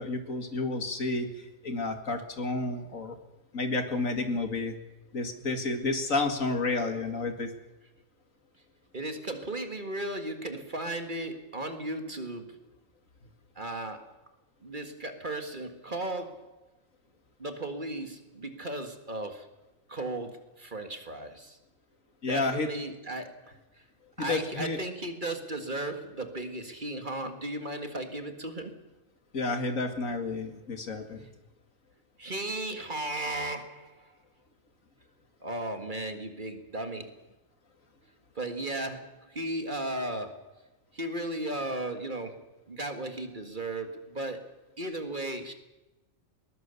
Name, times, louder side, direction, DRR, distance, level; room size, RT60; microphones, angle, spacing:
voice 1, 0.0-3.2 3.5-4.8 5.1-7.5 22.2-22.7 24.2-24.8 29.3-31.3, left 3 dB, 70° left, 7 dB, 2.6 m, -31 dB
voice 2, 8.9-12.6 13.6-14.2 14.6-16.5 17.4-19.5 19.9-21.6 22.3-23.6 24.2-28.8 32.2-34.1 35.4-37.2 38.4-40.5 40.9-44.5 44.8-45.5, right 1 dB, 35° right, 7 dB, 1.9 m, -35 dB
21.0 x 21.0 x 7.0 m, 1.0 s
omnidirectional pair, 1.4 m